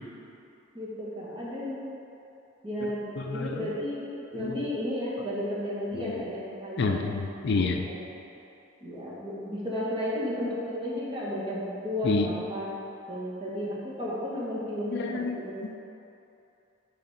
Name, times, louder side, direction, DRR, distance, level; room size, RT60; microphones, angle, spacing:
voice 1, 0.7-1.8 2.6-4.0 4.3-7.2 7.9-8.0 8.8-12.7 13.1-15.5, equal, 25° right, -7 dB, 1.4 m, -33 dB
voice 2, 3.2-3.7 4.3-4.7 5.9-6.2 6.8-7.9 12.0-12.3 14.9-15.7, left 3 dB, 60° left, 4 dB, 0.4 m, -29 dB
9.3 x 3.5 x 4.2 m, 2.8 s
head